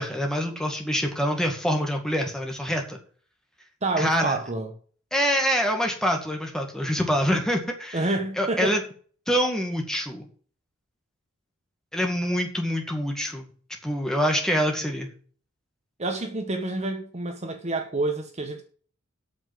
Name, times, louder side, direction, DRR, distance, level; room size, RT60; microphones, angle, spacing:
voice 1, 0.0-3.0 4.0-4.4 5.1-8.1 8.4-8.8 9.3-10.3 11.9-13.5 13.8-15.1, equal, 5° left, 2.2 m, -25 dB
voice 2, 3.8-4.7 7.9-8.8 16.0-18.6, right 2 dB, 30° right, 1.3 m, -28 dB
8.8 x 7.3 x 7.5 m
head